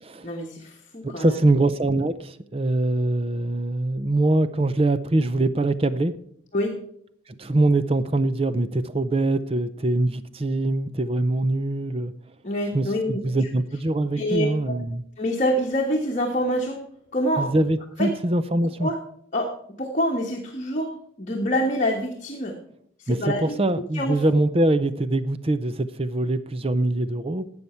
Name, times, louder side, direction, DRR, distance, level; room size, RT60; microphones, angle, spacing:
voice 1, 0.2-1.4 6.5-6.7 12.4-13.2 14.1-14.7 15.2-16.8 17.1-17.5 18.0-18.1 18.8-19.0 19.3-19.5 19.8-20.9 21.2-22.5 23.0-23.6 23.9-24.2, equal, 35° left, 0 dB, 1.3 m, -26 dB
voice 2, 1.0-6.1 7.3-12.1 12.7-15.0 17.4-18.9 23.1-27.5, right 2 dB, 30° right, 13 dB, 0.6 m, -23 dB
12.5 x 8.1 x 4.4 m, 0.66 s
head